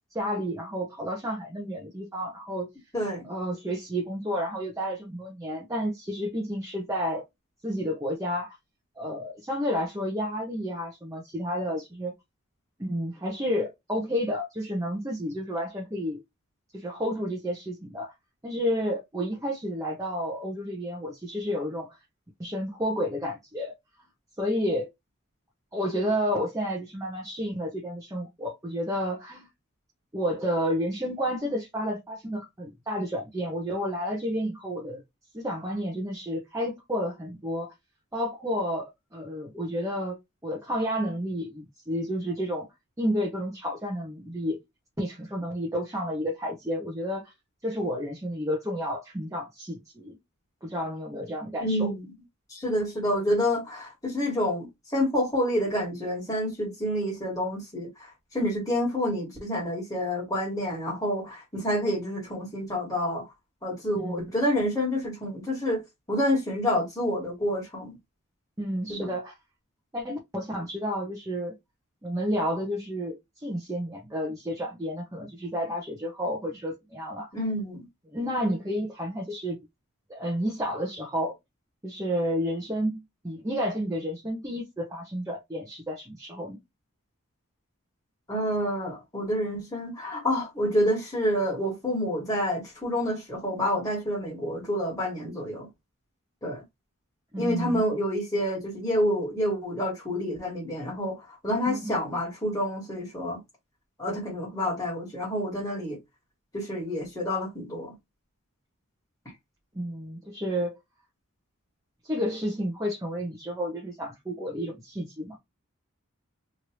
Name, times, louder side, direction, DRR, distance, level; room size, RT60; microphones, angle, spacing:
voice 1, 0.1-2.7 3.2-7.2 7.6-8.6 9.0-12.1 12.8-16.2 16.7-18.1 18.4-22.0 22.4-23.7 24.4-24.9 25.7-29.5 30.1-35.0 35.3-37.7 38.1-40.2 40.4-42.7 43.0-44.6 45.0-47.3 47.6-50.2 50.6-52.0 64.0-64.3 68.6-69.3 69.9-71.6 72.0-77.3 78.1-79.6 80.1-81.3 81.8-86.6 97.3-97.9 101.7-101.9 109.7-110.7 112.0-115.4, equal, 15° right, 0.7 m, -31 dB
voice 2, 2.9-3.3 51.6-52.0 52.5-54.7 54.9-63.3 63.6-65.8 66.1-67.9 68.9-69.1 77.3-77.9 88.3-95.7 96.4-96.6 97.4-103.4 104.0-106.0 106.5-107.9, equal, 15° left, 1.6 m, -28 dB
3.0 x 2.6 x 2.9 m
head